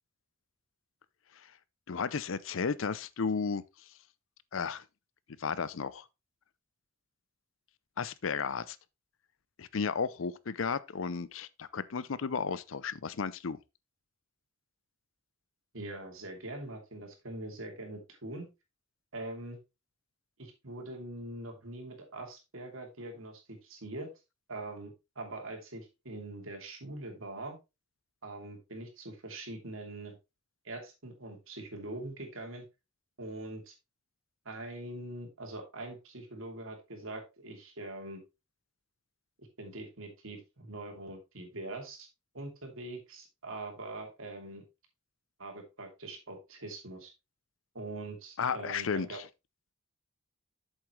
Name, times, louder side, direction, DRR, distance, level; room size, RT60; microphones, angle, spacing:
voice 1, 1.9-3.6 4.5-4.8 5.4-6.0 8.0-8.8 9.6-13.6 48.4-49.3, left 5 dB, 75° left, 0.6 m, -33 dB
voice 2, 15.7-18.5 19.1-19.6 20.4-24.1 24.5-27.6 28.2-30.2 30.6-32.6 33.2-33.7 34.4-38.2 39.4-42.1 42.3-44.6 45.4-47.1 47.7-49.2, right 2 dB, 80° right, 2.8 m, -43 dB
8.0 x 7.3 x 3.2 m
head